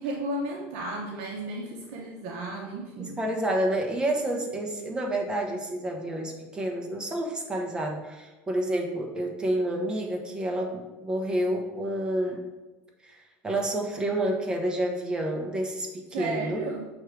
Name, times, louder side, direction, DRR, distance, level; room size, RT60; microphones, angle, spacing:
voice 1, 0.0-3.2 16.1-16.8, right 2 dB, 70° right, 0 dB, 0.8 m, -33 dB
voice 2, 3.0-12.4 13.0-13.2 13.4-16.6, right 1 dB, 15° right, 1 dB, 0.9 m, -29 dB
6.4 x 3.2 x 4.7 m, 1.1 s
supercardioid pair, 135°, 6 cm